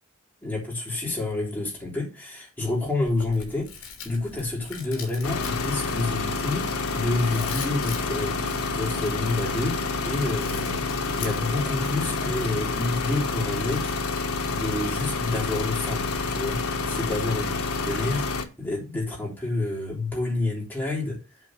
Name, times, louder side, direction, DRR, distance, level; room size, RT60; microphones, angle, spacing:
voice 1, 0.4-10.9 11.1-13.9 14.4-17.6 17.8-21.2, left 2 dB, 10° left, 3.4 m, -29 dB
Chewing mastication, 3.0-17.1, left 5 dB, 65° left, 3.0 m, -44 dB
sound 1, 4.8-12.9, equal, 20° right, 2.6 m, -43 dB
Diesel Power Generator, 5.2-18.5, left 4 dB, 85° left, 1.2 m, -28 dB
8.1 x 4.6 x 6.5 m
head